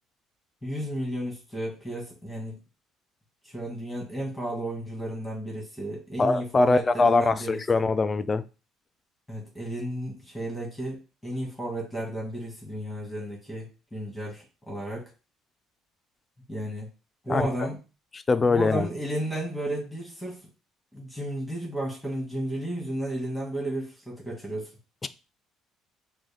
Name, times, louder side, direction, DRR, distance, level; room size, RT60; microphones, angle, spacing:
voice 1, 0.6-2.6 3.5-7.8 9.3-15.1 16.5-16.9 17.2-17.8 18.5-20.4 20.9-24.7, right 1 dB, ahead, -3 dB, 2.0 m, -33 dB
voice 2, 6.2-8.4 17.3-17.5 18.1-18.9 25.0-25.1, left 3 dB, 25° left, 13 dB, 0.4 m, -22 dB
6.0 x 2.2 x 3.5 m, 0.32 s
cardioid pair, 100°, 0 cm